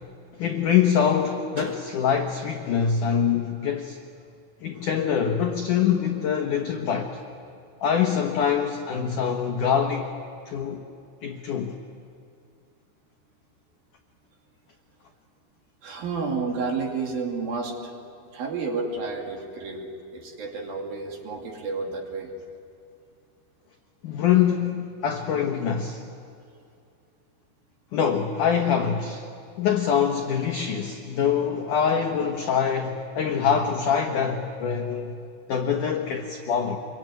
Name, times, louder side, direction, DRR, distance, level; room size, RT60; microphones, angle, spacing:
voice 1, 0.4-4.0 4.6-7.2 7.8-10.1 10.5-10.8 11.2-11.8 24.0-26.0 27.9-29.3 29.6-35.1 35.5-36.8, left 7 dB, 75° left, 3 dB, 1.8 m, -24 dB
voice 2, 15.8-17.9 18.3-22.3, right 4 dB, 55° right, 1 dB, 4.0 m, -31 dB
27.0 x 23.0 x 9.3 m, 2.5 s
omnidirectional pair, 5.7 m